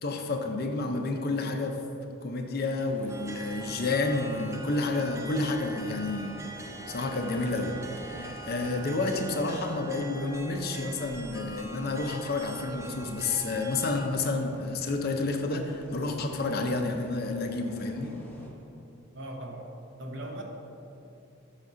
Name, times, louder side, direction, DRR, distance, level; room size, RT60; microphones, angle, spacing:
voice 1, 0.0-1.8 2.2-6.4 6.9-18.1, left 3 dB, 50° left, 4 dB, 0.5 m, -30 dB
sound 1, 2.7-18.5, equal, 10° left, 0.8 m, -49 dB
sound 2, 3.1-14.1, right 3 dB, 15° right, 0.3 m, -43 dB
voice 2, 19.1-20.4, right 1 dB, 60° right, 2 dB, 0.8 m, -39 dB
5.8 x 4.0 x 6.2 m, 2.8 s
head